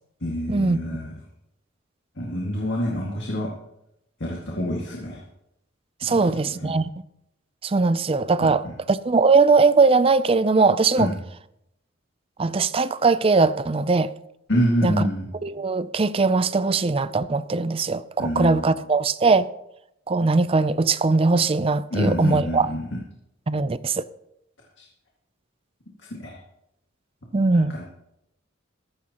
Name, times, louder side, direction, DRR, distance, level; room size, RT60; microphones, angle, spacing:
voice 1, 0.2-1.1 2.2-3.5 4.2-5.2 6.1-6.7 8.4-8.7 11.0-11.1 14.5-15.3 18.2-18.7 21.9-23.0 24.8-24.9 26.2-26.4 27.5-27.8, equal, 55° left, 2.0 m, -27 dB
voice 2, 6.0-6.9 7.6-11.1 12.4-14.1 14.8-15.1 15.4-19.5 20.1-22.7 23.5-24.0 27.3-27.8, right 4 dB, 25° right, 0.4 m, -20 dB
14.5 x 14.0 x 2.9 m
head